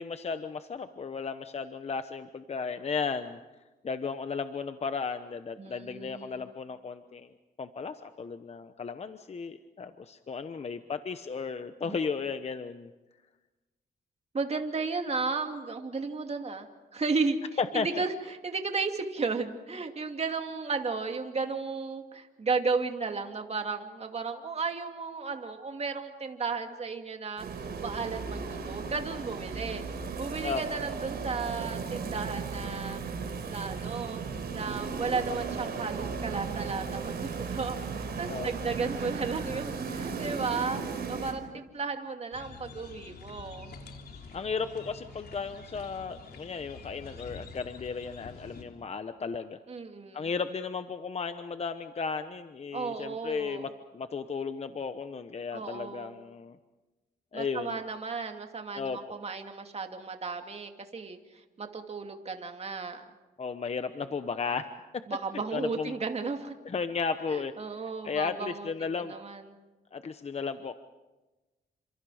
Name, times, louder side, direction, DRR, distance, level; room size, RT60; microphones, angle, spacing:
voice 1, 0.0-3.4 3.8-7.3 7.6-12.9 17.6-17.9 30.4-30.6 38.3-38.5 44.3-49.6 50.1-56.6 57.3-57.8 58.7-59.0 63.4-64.7 65.5-65.9 66.6-67.5 68.0-69.1 69.9-70.7, left 5 dB, 40° left, 9 dB, 1.0 m, -34 dB
voice 2, 5.6-6.4 11.9-12.0 14.3-16.7 16.9-17.4 17.7-27.5 27.8-29.8 30.2-33.0 33.5-34.2 34.5-40.8 41.1-43.7 49.7-50.3 52.7-53.7 55.5-56.2 57.3-63.0 65.1-66.5 67.3-69.4, right 4 dB, 35° right, 5 dB, 2.6 m, -34 dB
sound 1, 27.4-41.3, right 5 dB, 70° right, 4.9 m, -36 dB
sound 2, 42.3-48.6, left 4 dB, 65° left, 3.7 m, -47 dB
29.5 x 26.5 x 5.0 m, 1.1 s
cardioid pair, 100°, 17 cm